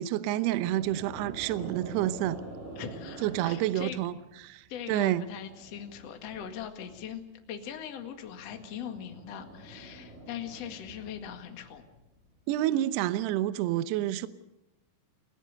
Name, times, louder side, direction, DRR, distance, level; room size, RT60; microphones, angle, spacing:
voice 1, 0.0-2.4 3.2-4.1 4.4-5.2 12.5-14.3, right 13 dB, 80° right, 2.4 m, -29 dB
sound 1, 0.6-4.3 4.7-7.0 7.5-12.2, right 1 dB, 40° right, 8.6 m, -47 dB
voice 2, 2.8-4.0 4.7-11.8, left 8 dB, 55° left, 1.9 m, -41 dB
29.5 x 16.5 x 6.6 m
omnidirectional pair, 5.9 m